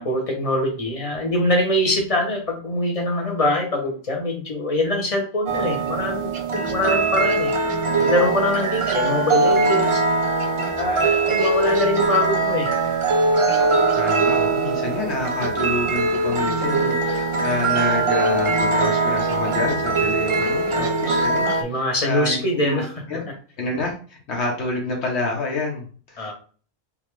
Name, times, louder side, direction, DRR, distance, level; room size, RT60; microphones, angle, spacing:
voice 1, 0.0-7.5 8.0-10.0 10.8-12.7 21.4-22.9 26.2-26.3, left 1 dB, 35° left, 1 dB, 1.0 m, -23 dB
sound 1, 5.5-21.6, right 3 dB, 45° right, 0.4 m, -21 dB
voice 2, 13.9-23.2 23.6-26.3, left 3 dB, 85° left, -1 dB, 1.2 m, -28 dB
3.5 x 2.8 x 3.2 m, 0.41 s
omnidirectional pair, 1.1 m